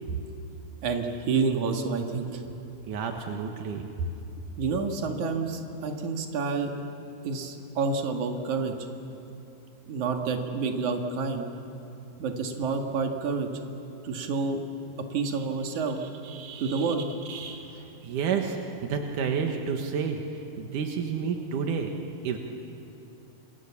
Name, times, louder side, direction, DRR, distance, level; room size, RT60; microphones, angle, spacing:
voice 1, 0.8-2.4 4.6-6.7 7.2-8.9 9.9-11.5 12.2-13.5 14.0-14.6 15.1-16.0 16.6-17.0, right 4 dB, 75° right, 3 dB, 3.4 m, -29 dB
voice 2, 2.9-4.1 16.0-16.9 17.3-21.9 22.2-22.4, right 6 dB, 90° right, 3 dB, 3.0 m, -31 dB
29.0 x 27.5 x 7.3 m, 2.8 s
omnidirectional pair, 3.5 m